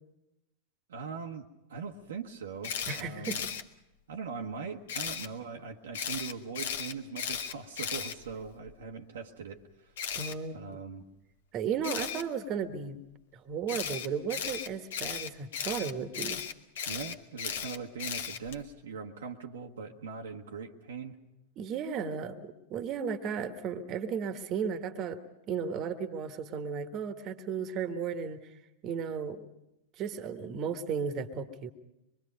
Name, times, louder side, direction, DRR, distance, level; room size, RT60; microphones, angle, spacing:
voice 1, 0.9-3.4 4.1-9.9 10.5-11.0 16.9-21.2, right 5 dB, 65° right, 2 dB, 1.1 m, -41 dB
Camera, 2.6-3.6 4.9-5.3 5.9-8.7 10.0-10.3 11.8-12.2 13.7-18.6, left 8 dB, 60° left, 1.1 m, -36 dB
voice 2, 2.9-3.4 10.1-10.6 11.5-13.0 13.3-16.4 21.6-25.2 25.5-28.4 28.8-29.5 30.0-31.7, right 6 dB, 35° right, 10 dB, 1.4 m, -34 dB
25.0 x 22.5 x 5.3 m, 0.90 s
figure-of-eight pair, 90°, 0 cm